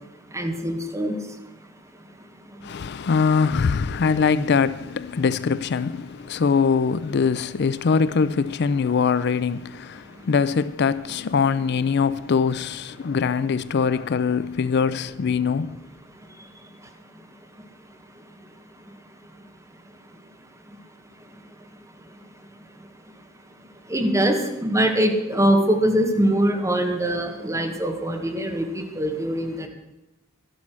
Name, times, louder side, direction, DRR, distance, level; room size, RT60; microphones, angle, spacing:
voice 1, 0.3-1.2 23.9-29.7, right 1 dB, 15° right, 1.7 m, -22 dB
voice 2, 2.6-15.8, left 5 dB, 55° left, 0.4 m, -22 dB
12.0 x 11.5 x 6.2 m
head